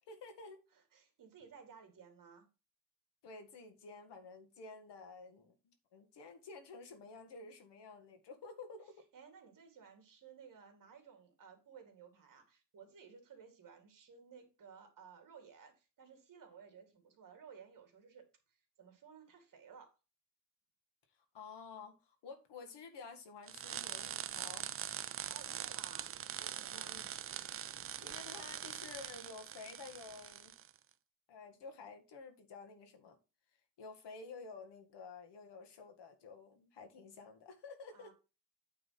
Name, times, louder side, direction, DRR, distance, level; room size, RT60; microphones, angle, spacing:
voice 1, 0.1-0.6 3.2-9.0 21.3-24.7 26.7-27.1 28.0-30.5 31.3-33.2 33.8-38.1, left 4 dB, 85° left, 1.8 m, -51 dB
voice 2, 0.7-2.5 9.1-20.0 25.2-26.1 26.4-27.0 37.9-38.1, right 6 dB, 50° right, 2.3 m, -57 dB
sound 1, 23.5-30.7, right 9 dB, 35° right, 0.4 m, -43 dB
8.8 x 3.8 x 5.7 m
wide cardioid pair, 160°, 41 cm